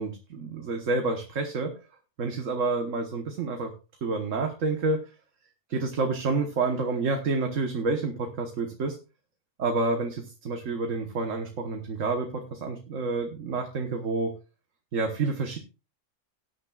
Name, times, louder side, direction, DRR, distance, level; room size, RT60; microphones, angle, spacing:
voice 1, 0.0-1.7 2.2-3.7 4.0-5.0 5.7-8.9 9.6-14.3 14.9-15.6, right 3 dB, 75° right, 4 dB, 1.6 m, -29 dB
18.0 x 9.5 x 2.4 m, 0.31 s
omnidirectional pair, 1.3 m